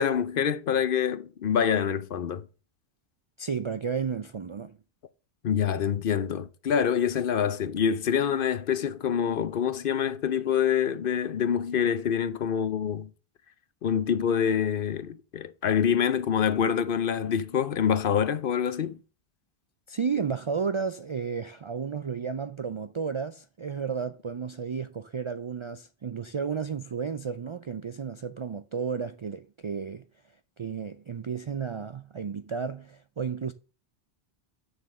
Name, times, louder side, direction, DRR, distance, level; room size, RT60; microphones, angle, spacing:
voice 1, 0.0-2.5 5.4-13.1 13.8-19.0, left 8 dB, 60° left, 0.8 m, -26 dB
voice 2, 3.4-4.8 19.9-30.0 30.6-33.5, right 6 dB, 50° right, 0.3 m, -32 dB
6.8 x 6.6 x 6.4 m
omnidirectional pair, 1.0 m